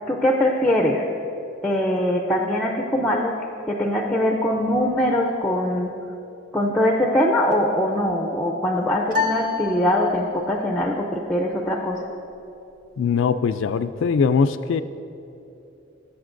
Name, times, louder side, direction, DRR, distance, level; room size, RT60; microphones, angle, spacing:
voice 1, 0.1-1.1 1.6-3.4 3.7-5.9 6.5-12.0, left 1 dB, 5° left, 1 dB, 0.5 m, -22 dB
sound 1, 9.1-10.6, left 5 dB, 40° right, 0.9 m, -28 dB
voice 2, 13.0-14.8, left 5 dB, 65° left, 12 dB, 0.3 m, -21 dB
17.0 x 7.4 x 2.6 m, 2.8 s
head